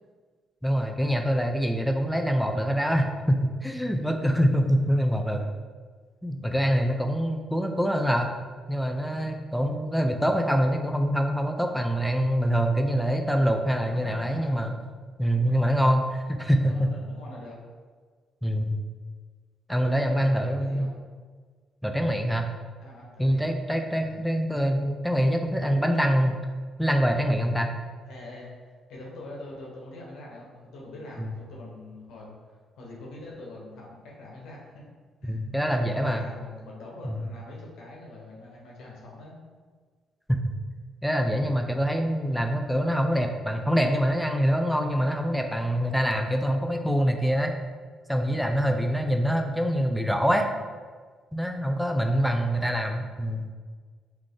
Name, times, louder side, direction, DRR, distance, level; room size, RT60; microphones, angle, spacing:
voice 1, 0.6-5.4 6.2-8.4 8.7-14.8 15.2-16.9 18.4-18.8 19.7-20.9 21.8-22.5 23.2-26.4 26.8-27.8 31.2-31.4 35.3-36.2 37.1-37.3 40.3-40.4 41.0-47.5 48.1-50.5 51.3-53.5, equal, ahead, 4 dB, 0.4 m, -25 dB
voice 2, 13.8-14.7 15.3-15.8 16.6-17.6 19.7-21.0 22.8-23.5 24.0-24.2 28.1-32.4 32.8-34.8 35.2-35.4 35.7-39.4 52.1-52.7, left 2 dB, 85° left, -3 dB, 1.2 m, -44 dB
3.6 x 3.3 x 3.7 m, 1.6 s
cardioid pair, 90°, 0 cm